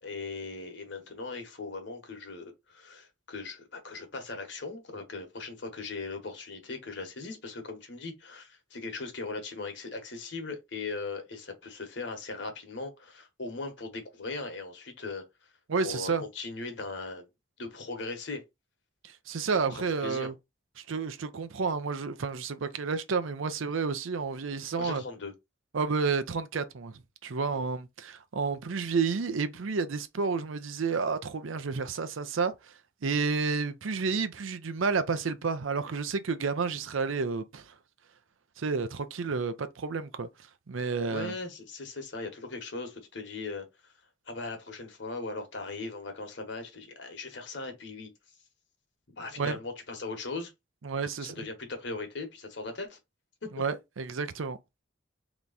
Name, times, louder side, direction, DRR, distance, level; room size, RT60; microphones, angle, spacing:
voice 1, 0.0-15.5 15.8-17.3 17.6-18.4 19.7-20.3 24.8-25.3 27.5-27.7 41.1-43.9 44.3-48.1 49.2-50.5 51.2-53.0 53.4-53.5, left 3 dB, 65° left, 1.2 m, -39 dB
voice 2, 15.7-16.2 19.0-20.3 20.9-25.0 25.7-26.9 27.2-32.5 33.0-37.7 38.6-40.3 40.7-41.3 49.4-49.6 50.8-51.3 53.5-54.6, right 4 dB, 85° right, 0.6 m, -30 dB
3.4 x 3.0 x 4.0 m
head